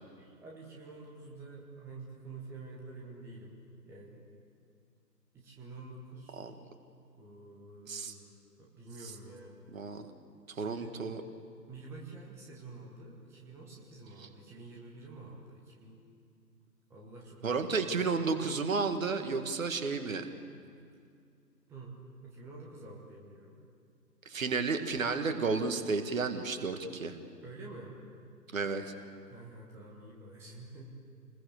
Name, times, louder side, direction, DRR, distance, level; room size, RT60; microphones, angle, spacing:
voice 1, 0.2-3.6 3.8-4.2 5.3-6.5 7.2-9.6 10.5-11.0 11.7-16.0 16.9-18.0 21.7-21.9 22.2-23.6 27.4-28.0 29.3-30.9, right 3 dB, 5° right, -2 dB, 1.2 m, -48 dB
voice 2, 9.7-10.0 10.5-11.2 14.2-14.3 17.4-20.3 24.3-27.2 28.5-28.9, right 4 dB, 50° right, 7 dB, 2.0 m, -32 dB
29.0 x 21.0 x 7.0 m, 2.3 s
figure-of-eight pair, 140°, 50 cm